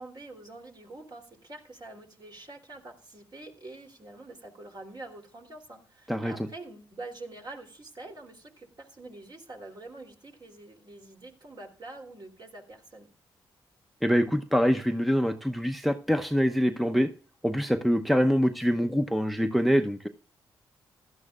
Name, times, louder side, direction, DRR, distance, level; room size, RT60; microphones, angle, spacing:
voice 1, 0.0-13.1, right 2 dB, 45° right, 2 dB, 3.3 m, -45 dB
voice 2, 6.1-6.5 14.0-17.1 17.4-20.1, equal, ahead, 7 dB, 0.8 m, -25 dB
15.5 x 12.0 x 2.5 m, 0.41 s
supercardioid pair, 50°, 10 cm